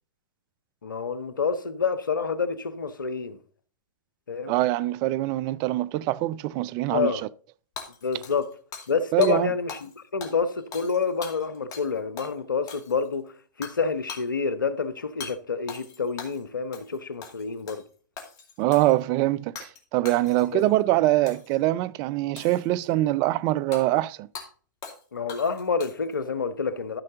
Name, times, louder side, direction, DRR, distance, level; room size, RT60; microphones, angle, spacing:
voice 1, 0.8-3.4 4.3-4.5 6.9-7.2 8.0-8.5 8.9-13.3 13.6-17.8 20.5-20.7 25.1-27.0, left 5 dB, 85° left, 0.9 m, -28 dB
voice 2, 4.5-7.2 9.1-9.5 18.6-24.3, right 16 dB, 40° right, 0.4 m, -24 dB
Hammer / Shatter, 7.8-9.0 9.2-9.3 9.7-9.9 10.2-11.9 12.2-12.3 12.7-13.1 13.6-13.8 14.1-14.3 15.2-15.3 15.7-16.4 16.7-17.0 17.2-17.8 18.2-19.0 19.5-19.8 20.0-20.6 21.3-21.6 22.4-22.9 23.7-23.8 24.3-24.5 24.8-25.0 25.3-26.1, left 6 dB, 35° left, 2.3 m, -41 dB
13.0 x 5.5 x 3.8 m
hypercardioid pair, 110°, 10 cm